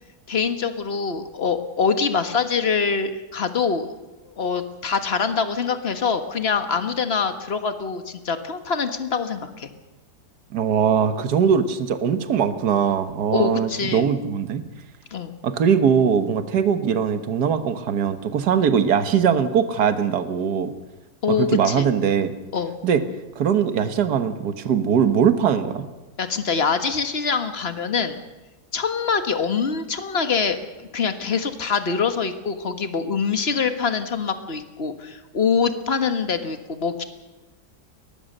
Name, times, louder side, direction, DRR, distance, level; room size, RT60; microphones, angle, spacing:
voice 1, 0.3-3.9 4.2-9.7 13.3-14.1 15.1-15.3 21.2-21.9 22.5-22.7 26.2-28.2 28.7-37.0, left 5 dB, 40° left, 8 dB, 1.7 m, -24 dB
voice 2, 10.5-14.7 15.4-20.7 21.3-22.3 22.8-23.0 23.4-25.9, right 7 dB, 70° right, 9 dB, 1.8 m, -21 dB
22.5 x 19.0 x 6.6 m, 1.1 s
omnidirectional pair, 1.8 m